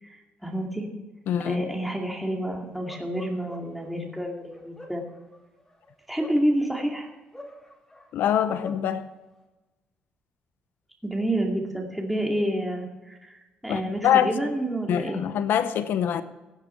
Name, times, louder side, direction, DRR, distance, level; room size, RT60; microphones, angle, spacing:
voice 1, 0.0-0.9 1.4-5.0 6.1-7.1 11.0-15.3, right 1 dB, 5° right, 2.4 m, -29 dB
voice 2, 1.3-1.7 8.1-9.1 13.7-14.3 14.9-16.2, left 9 dB, 75° left, 0.8 m, -24 dB
Bark, 2.8-3.9 4.5-6.9 7.3-8.9, left 1 dB, 15° left, 4.2 m, -45 dB
16.0 x 8.1 x 5.7 m
cardioid pair, 95°, 4 cm